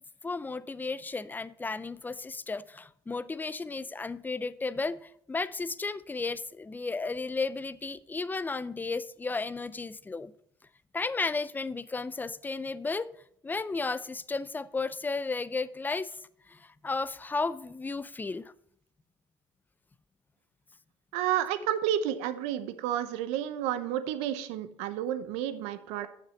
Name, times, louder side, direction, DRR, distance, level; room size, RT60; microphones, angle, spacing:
voice 1, 0.2-10.3 10.9-13.1 13.4-16.2 16.5-18.5, left 3 dB, 15° left, 0.5 m, -34 dB
voice 2, 21.1-26.1, right 10 dB, 80° right, 0.9 m, -31 dB
7.2 x 6.4 x 7.0 m
supercardioid pair, 75°, 11 cm